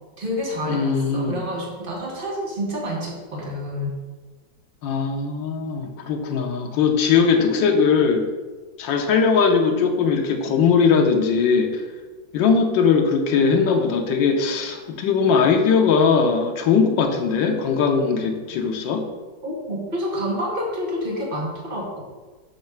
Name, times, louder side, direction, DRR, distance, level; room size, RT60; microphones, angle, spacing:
voice 1, 0.2-3.9 19.4-22.0, equal, 30° right, -2 dB, 1.4 m, -28 dB
voice 2, 0.7-1.4 4.8-8.3 8.8-11.8 12.3-19.1, left 5 dB, 85° left, 3 dB, 1.5 m, -20 dB
6.9 x 3.1 x 5.8 m, 1.3 s
omnidirectional pair, 2.0 m